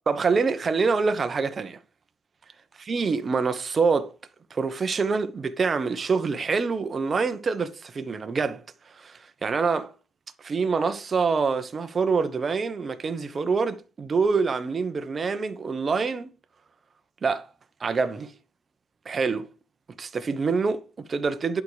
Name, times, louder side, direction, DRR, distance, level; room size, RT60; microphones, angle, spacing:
voice 1, 0.1-1.8 2.8-4.1 4.5-9.9 10.4-16.3 17.2-17.5 17.8-18.3 19.0-19.5 20.0-21.6, right 4 dB, 30° right, 1.0 m, -26 dB
11.0 x 4.7 x 5.0 m
cardioid pair, 135°, 0 cm